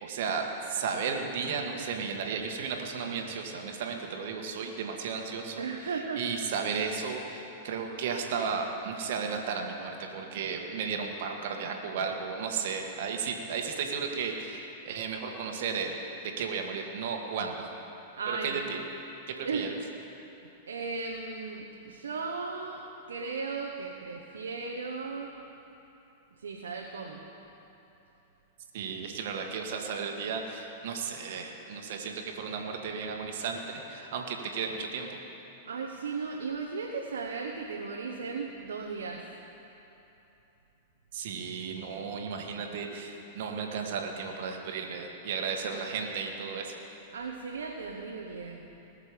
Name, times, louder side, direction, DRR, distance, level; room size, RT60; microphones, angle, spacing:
voice 1, 0.0-16.0 16.4-17.7 18.3-18.8 19.3-19.8 28.7-35.2 41.1-46.7, right 5 dB, 60° right, 2 dB, 1.5 m, -34 dB
voice 2, 5.6-6.2 18.2-18.6 19.4-19.7 20.7-25.4 26.4-27.2 35.7-39.4 47.1-48.7, right 4 dB, 80° right, 0 dB, 1.0 m, -36 dB
19.5 x 6.6 x 5.1 m, 3.0 s
hypercardioid pair, 100°, 0 cm